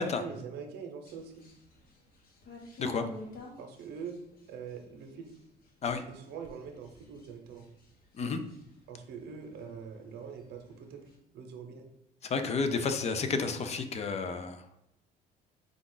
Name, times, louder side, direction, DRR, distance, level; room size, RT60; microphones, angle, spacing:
voice 1, 0.2-1.4 3.6-4.2 4.5-5.3 6.1-7.7 8.9-11.0 11.3-11.9, right 6 dB, 75° right, 5 dB, 0.7 m, -43 dB
sound 1, 1.0-9.8 10.2-11.1, left 2 dB, 60° left, 1.1 m, -51 dB
voice 2, 12.2-14.6, left 4 dB, 40° left, 8 dB, 0.5 m, -31 dB
5.0 x 2.4 x 3.8 m, 0.80 s
cardioid pair, 110°, 17 cm